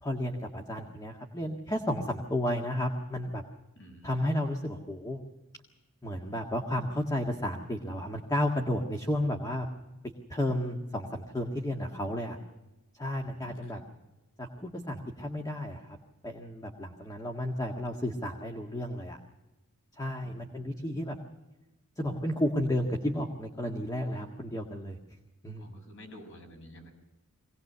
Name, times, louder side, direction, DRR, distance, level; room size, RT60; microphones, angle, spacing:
voice 1, 0.0-3.4 4.0-5.2 6.0-9.7 10.3-12.4 13.0-13.8 14.4-15.8 16.2-19.2 20.0-21.2 22.0-25.0 25.4-25.7, left 1 dB, 15° left, 2 dB, 1.8 m, -32 dB
voice 2, 3.8-4.3 13.2-13.9 20.2-20.9 25.6-26.9, equal, 60° left, 4 dB, 7.3 m, -51 dB
23.5 x 19.0 x 6.8 m, 1.0 s
head